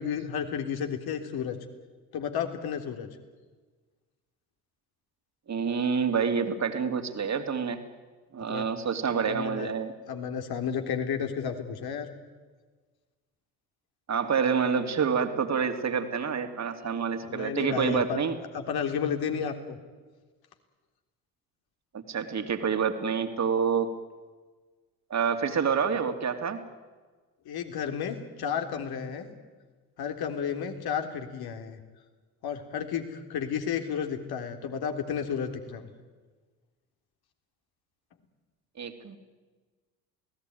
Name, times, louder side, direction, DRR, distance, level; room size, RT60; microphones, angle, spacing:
voice 1, 0.0-1.6 2.1-3.1 8.5-8.6 9.3-9.7 10.1-12.1 17.2-18.3 18.5-19.8 27.4-29.3 30.0-31.8 32.4-35.9, left 7 dB, 55° left, 6 dB, 3.4 m, -32 dB
voice 2, 5.5-7.8 8.3-9.9 14.1-18.4 21.9-23.9 25.1-26.6 38.8-39.2, right 6 dB, 35° right, 7 dB, 3.0 m, -27 dB
28.5 x 18.0 x 9.4 m, 1.4 s
hypercardioid pair, 55°, 44 cm